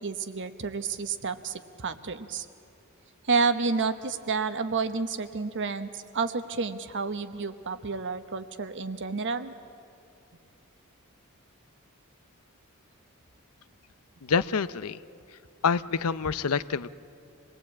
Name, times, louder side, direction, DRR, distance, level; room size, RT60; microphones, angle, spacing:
voice 1, 0.0-2.5 3.3-9.5, right 4 dB, 55° right, 10 dB, 1.1 m, -30 dB
voice 2, 14.2-15.0 15.6-16.9, left 5 dB, 85° left, 16 dB, 0.6 m, -27 dB
26.5 x 19.5 x 8.5 m, 2.7 s
head